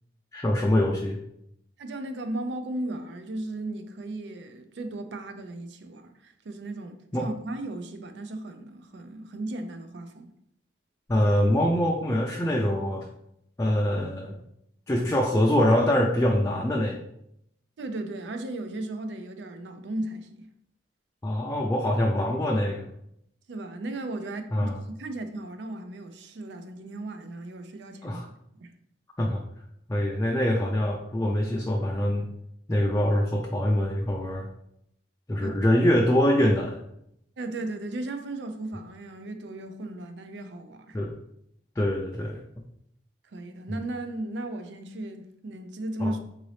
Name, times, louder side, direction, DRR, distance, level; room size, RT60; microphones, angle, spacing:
voice 1, 0.3-1.2 7.1-7.3 11.1-13.1 13.6-14.4 14.9-17.0 21.2-22.9 24.5-24.8 28.0-28.2 29.2-29.4 29.9-32.3 32.7-34.5 35.3-36.8 40.9-41.1 41.8-42.4 46.0-46.1, left 1 dB, 15° left, 0.4 m, -24 dB
voice 2, 1.8-10.3 17.8-20.5 23.5-28.3 28.5-28.7 35.4-35.5 37.4-41.0 43.3-46.2, right 2 dB, 75° right, 0.4 m, -36 dB
3.9 x 2.7 x 3.2 m
head